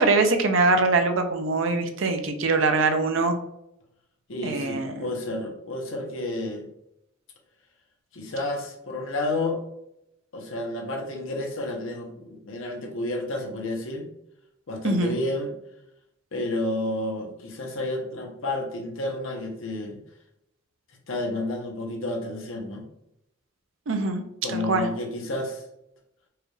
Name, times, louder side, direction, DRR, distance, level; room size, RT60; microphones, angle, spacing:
voice 1, 0.0-3.4 4.4-5.1 14.8-15.2 23.9-24.2 24.5-24.9, right 3 dB, 70° right, 6 dB, 0.5 m, -23 dB
voice 2, 4.3-6.6 8.1-9.6 10.3-14.1 14.7-15.5 16.3-20.0 21.1-22.9 24.4-25.6, left 2 dB, 75° left, 1 dB, 0.9 m, -30 dB
4.6 x 2.3 x 3.2 m, 0.81 s
head